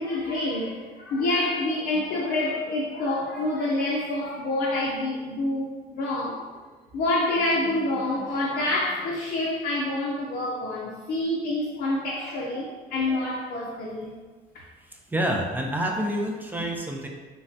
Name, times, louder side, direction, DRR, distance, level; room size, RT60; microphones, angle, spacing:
voice 1, 0.0-5.7 6.0-6.4 6.9-14.1, left 2 dB, 60° left, -5 dB, 0.5 m, -27 dB
voice 2, 14.9-17.1, right 1 dB, 10° right, 0 dB, 0.4 m, -28 dB
3.2 x 2.2 x 2.6 m, 1.4 s
cardioid pair, 110°, 17 cm